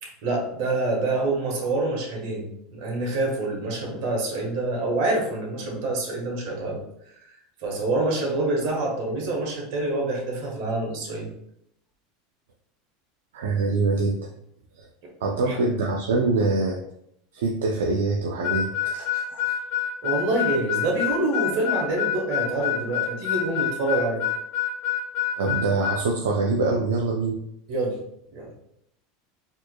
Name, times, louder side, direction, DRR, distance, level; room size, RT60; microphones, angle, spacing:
voice 1, 0.0-6.8 7.6-11.3 15.0-15.6 20.0-24.2 27.7-28.0 28.3-28.5, right 2 dB, 65° right, -1 dB, 1.4 m, -26 dB
voice 2, 13.3-14.2 15.2-16.8 17.3-19.5 25.4-27.4, right 3 dB, 85° right, 0 dB, 0.4 m, -24 dB
Harmonica, 18.4-26.0, left 9 dB, 55° left, 0.6 m, -27 dB
4.4 x 2.9 x 2.2 m, 0.75 s
hypercardioid pair, 100°, 0 cm